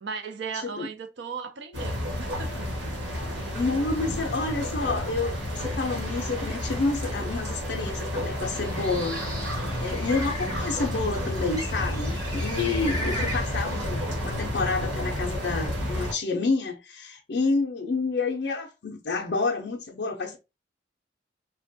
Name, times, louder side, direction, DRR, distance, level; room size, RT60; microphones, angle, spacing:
voice 1, 0.0-2.7 13.0-13.4, right 5 dB, 65° right, 0.4 m, -37 dB
voice 2, 0.5-0.9 3.5-9.2 9.8-20.4, left 3 dB, 60° left, 0.5 m, -29 dB
sound 1, 1.7-16.1, left 1 dB, 85° right, 1.2 m, -31 dB
Bird, 8.4-13.9, left 1 dB, 20° right, 0.8 m, -38 dB
3.3 x 2.1 x 2.6 m
head